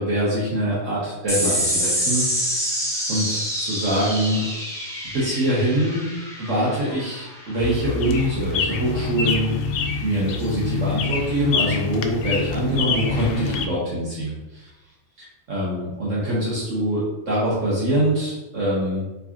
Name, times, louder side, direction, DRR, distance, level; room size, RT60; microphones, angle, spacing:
voice 1, 0.0-2.3 3.1-4.5 5.1-6.1 6.4-9.5 10.0-14.6 15.2-19.1, right 1 dB, 60° right, -7 dB, 1.4 m, -24 dB
sound 1, 1.3-8.1, equal, 5° left, 0.6 m, -27 dB
sound 2, 7.6-13.7, left 4 dB, 75° left, 0.5 m, -26 dB
4.6 x 3.9 x 2.8 m, 1.0 s
omnidirectional pair, 1.5 m